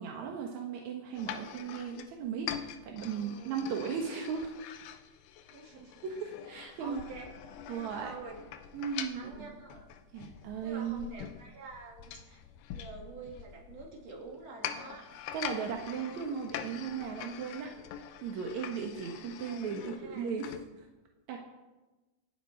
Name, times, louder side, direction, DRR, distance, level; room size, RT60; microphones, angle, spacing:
voice 1, 0.0-4.5 6.0-7.0 7.7-8.1 8.7-9.5 10.1-11.1 15.3-17.7 18.2-20.9 21.3-21.4, right 6 dB, 65° right, 1 dB, 1.9 m, -37 dB
sound 1, 1.1-20.7, left 9 dB, 75° left, 2.4 m, -44 dB
voice 2, 3.1-3.8 5.5-6.0 6.5-7.4 7.6-8.4 9.0-9.9 10.6-12.4 12.7-15.1 19.4-20.3, right 3 dB, 40° right, -1 dB, 3.4 m, -48 dB
26.5 x 9.2 x 4.4 m, 1.1 s
omnidirectional pair, 4.9 m